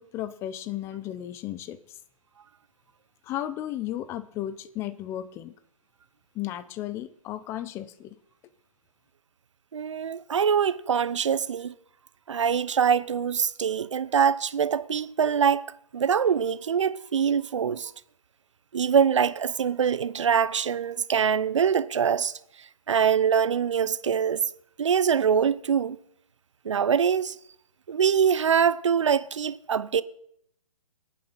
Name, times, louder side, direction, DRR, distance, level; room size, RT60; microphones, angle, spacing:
voice 1, 0.0-1.8 3.2-5.5 6.3-8.2, left 12 dB, 15° left, 0.6 m, -34 dB
voice 2, 9.7-11.7 12.3-15.6 15.9-17.9 18.7-22.3 22.9-24.5 24.8-26.0 26.6-27.4 27.9-30.0, right 7 dB, 60° right, 0.7 m, -24 dB
26.0 x 9.0 x 4.2 m
figure-of-eight pair, 135°, 18 cm